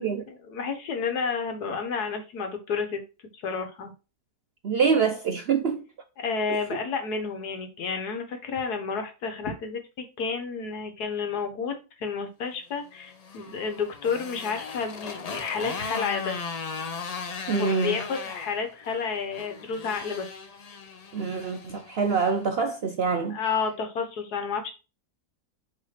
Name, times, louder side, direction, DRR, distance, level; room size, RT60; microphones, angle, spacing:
voice 1, 0.0-3.0 3.3-3.9 4.9-5.1 6.2-16.6 17.6-20.3 23.3-24.7, left 5 dB, 80° left, 1.8 m, -31 dB
voice 2, 4.6-5.8 17.5-18.0 21.1-23.4, right 5 dB, 65° right, 0.6 m, -25 dB
Motorcycle, 12.9-22.4, left 5 dB, 65° left, 0.4 m, -37 dB
5.7 x 3.4 x 5.7 m
omnidirectional pair, 1.6 m